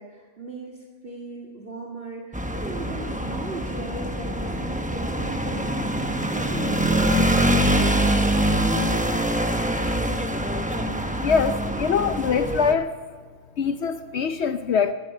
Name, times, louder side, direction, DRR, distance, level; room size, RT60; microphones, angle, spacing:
voice 1, 0.0-7.1, right 2 dB, 50° right, -1 dB, 2.2 m, -38 dB
Road Traffic in Rome, 2.3-12.7, right 1 dB, 5° right, 0.9 m, -24 dB
voice 2, 11.2-12.9 13.6-14.9, left 6 dB, 65° left, 10 dB, 0.9 m, -23 dB
16.5 x 13.0 x 6.5 m, 1.6 s
omnidirectional pair, 1.2 m